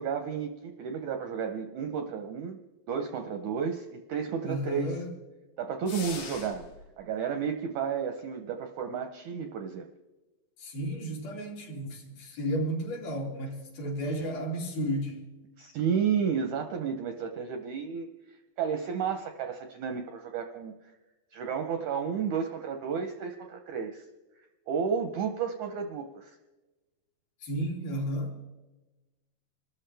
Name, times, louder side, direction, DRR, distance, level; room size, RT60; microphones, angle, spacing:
voice 1, 0.0-2.6 2.9-4.9 5.6-6.7 7.0-9.9 15.6-18.1 18.6-20.9 21.3-24.1 24.7-26.4, right 7 dB, 80° right, 1.7 m, -32 dB
voice 2, 4.4-5.1 10.6-15.2 27.4-28.4, equal, 75° left, 4.7 m, -33 dB
sound 1, 5.9-6.9, left 5 dB, 55° left, 1.7 m, -40 dB
26.0 x 13.5 x 3.4 m
omnidirectional pair, 4.3 m